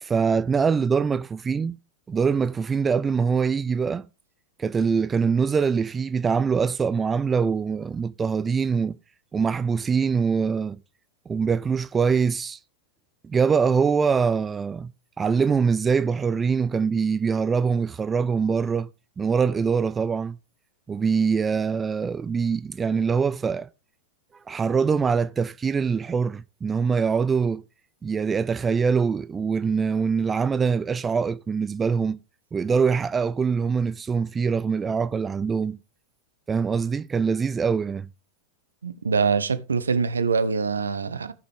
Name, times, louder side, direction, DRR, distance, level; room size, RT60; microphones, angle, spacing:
voice 1, 0.0-1.7 2.1-4.1 4.6-9.0 9.3-10.8 11.3-12.6 13.2-14.9 15.2-18.9 19.2-20.4 20.9-23.7 24.5-27.6 28.0-32.2 32.5-35.8 36.5-38.1, right 5 dB, 15° right, 0.4 m, -23 dB
voice 2, 38.8-41.3, right 5 dB, 75° right, 0.9 m, -24 dB
16.0 x 5.9 x 3.5 m
figure-of-eight pair, 90°, 0 cm